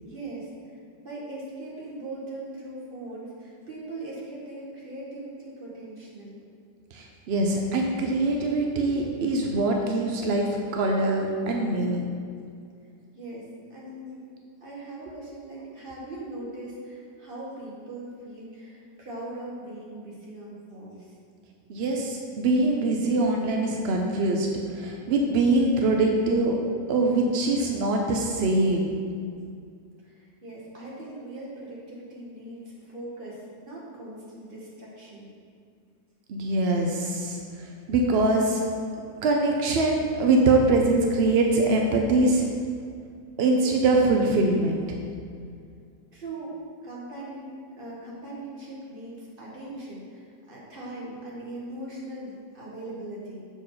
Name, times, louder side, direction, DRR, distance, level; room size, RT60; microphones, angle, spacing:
voice 1, 0.0-0.5 1.0-6.4 13.1-14.2 14.6-21.1 30.0-35.3 46.1-46.5 46.8-53.4, right 1 dB, 30° right, -5 dB, 1.7 m, -40 dB
voice 2, 6.9-12.1 21.7-24.5 24.7-26.6 26.9-29.0 36.3-38.6 39.2-42.4 43.4-45.0, right 2 dB, 70° right, 1 dB, 0.5 m, -23 dB
7.0 x 4.6 x 5.6 m, 2.3 s
omnidirectional pair, 1.9 m